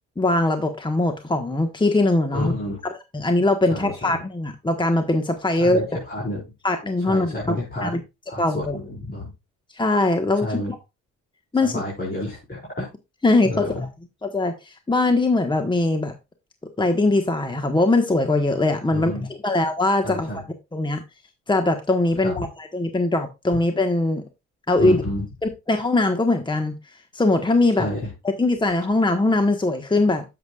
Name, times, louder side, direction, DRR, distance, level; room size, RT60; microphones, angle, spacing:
voice 1, 0.2-2.5 2.8-5.8 6.6-8.0 8.4-8.8 9.7-10.8 11.5-11.7 13.2-13.9 14.2-16.1 16.8-19.1 19.4-20.4 20.7-21.0 21.5-24.2 24.7-25.0 25.4-26.7 27.1-27.9 28.2-30.2, left 2 dB, 15° left, 6 dB, 1.3 m, -21 dB
voice 2, 2.3-2.8 3.7-4.1 5.6-6.4 7.1-8.0 8.3-9.3 10.4-10.7 11.7-12.9 13.4-13.8 18.9-19.3 20.0-20.4 22.2-22.3 24.8-25.2 27.8-28.0, left 1 dB, 30° left, -5 dB, 5.0 m, -29 dB
10.5 x 8.2 x 2.4 m, 0.24 s
cardioid pair, 90°, 30 cm